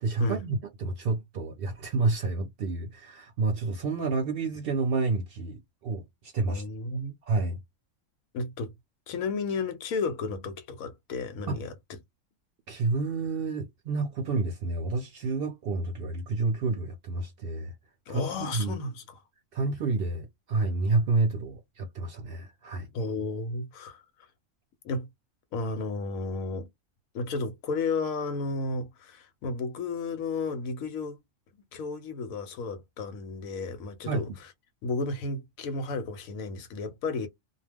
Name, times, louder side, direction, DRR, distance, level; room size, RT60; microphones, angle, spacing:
voice 1, 0.0-6.6 7.3-7.6 11.5-11.6 12.7-17.7 18.1-18.8 19.5-22.9 34.1-34.3, right 3 dB, 65° right, 0.6 m, -29 dB
voice 2, 6.5-7.1 8.3-8.7 9.1-11.7 18.1-19.2 22.9-24.0 24.8-25.1 25.5-26.7 27.1-31.2 31.7-34.3 34.8-37.3, left 3 dB, 90° left, 1.1 m, -33 dB
2.3 x 2.2 x 3.3 m
omnidirectional pair, 1.4 m